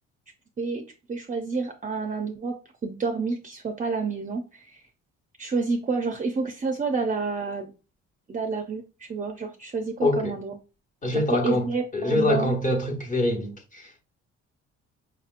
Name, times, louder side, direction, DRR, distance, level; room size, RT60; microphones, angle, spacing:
voice 1, 1.1-4.8 5.4-7.7 8.3-10.6 11.1-12.5, right 4 dB, 25° right, 0.5 m, -29 dB
voice 2, 10.0-10.4 11.0-11.7 11.9-14.0, left 1 dB, 25° left, 1.0 m, -25 dB
5.1 x 2.8 x 2.5 m
cardioid pair, 90°, 30 cm